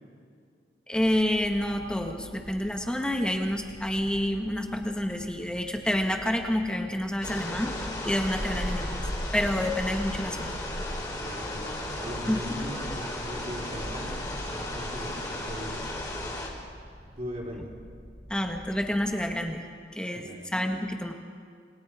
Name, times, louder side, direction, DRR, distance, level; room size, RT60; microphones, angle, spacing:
sound 1, 0.9-19.4, equal, 55° left, 4.4 m, -48 dB
voice 1, 0.9-9.0 9.3-10.5 12.3-12.4 18.3-19.6 20.0-21.1, left 1 dB, 5° left, 3 dB, 1.7 m, -28 dB
sound 2, 7.2-16.5, left 1 dB, 20° left, 4.0 m, -34 dB
sound 3, 7.6-15.0, equal, 15° right, 2.8 m, -52 dB
voice 2, 11.2-15.8 17.1-17.7 20.1-20.4, equal, 35° right, -2 dB, 4.5 m, -39 dB
28.0 x 22.5 x 5.0 m, 2.2 s
head